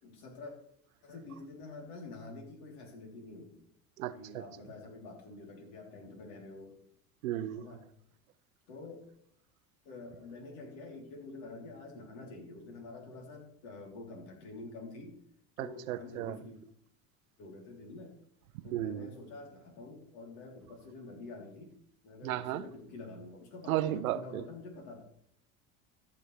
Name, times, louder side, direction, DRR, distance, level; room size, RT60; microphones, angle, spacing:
voice 1, 0.0-0.6 1.0-3.6 4.1-6.8 7.5-7.9 8.7-9.1 9.9-15.2 15.6-16.6 17.4-18.1 18.6-21.7 22.0-25.0, left 3 dB, 70° left, 3.4 m, -47 dB
voice 2, 4.0-4.4 7.2-7.6 15.6-16.3 18.7-19.1 22.2-22.6 23.7-24.2, right 14 dB, 90° right, 0.7 m, -34 dB
14.0 x 6.9 x 3.3 m
hypercardioid pair, 85°, 41 cm